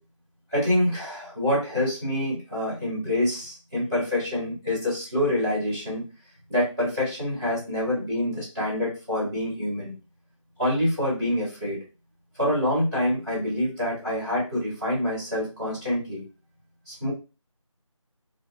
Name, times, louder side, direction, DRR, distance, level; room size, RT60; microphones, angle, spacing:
voice 1, 0.5-6.1 6.5-9.9 10.6-11.8 12.4-16.2 16.9-17.1, left 1 dB, 5° left, -12 dB, 0.7 m, -26 dB
2.4 x 2.4 x 2.3 m, 0.31 s
figure-of-eight pair, 165°, 17 cm